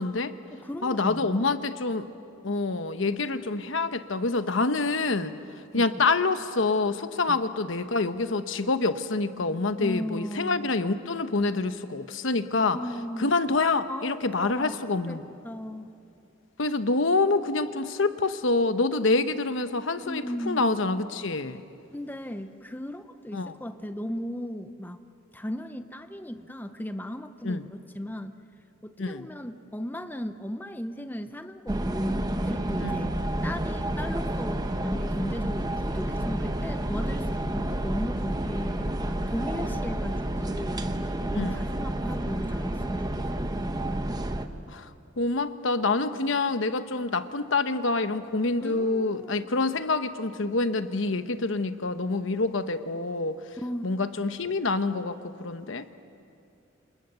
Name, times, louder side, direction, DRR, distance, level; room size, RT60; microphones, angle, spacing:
voice 1, 0.0-0.3 0.8-2.1 2.4-5.3 5.7-12.8 13.2-15.2 16.6-21.6 23.3-23.5 27.4-27.6 29.0-29.3 32.8-33.1 41.4-41.6 44.7-44.9 45.2-53.4 53.8-55.9, left 3 dB, 70° left, 10 dB, 1.0 m, -26 dB
voice 2, 0.5-1.6 5.7-6.0 7.3-7.4 9.8-10.7 12.7-13.3 13.9-14.8 15.1-15.2 15.4-15.9 20.0-20.7 21.9-25.0 25.3-28.3 28.8-33.1 33.4-43.0 48.6-49.5 53.6-53.9, equal, 10° left, 9 dB, 0.7 m, -36 dB
sound 1, 31.7-44.5, right 1 dB, 20° right, 1.0 m, -30 dB
28.0 x 27.5 x 6.9 m, 2.6 s
head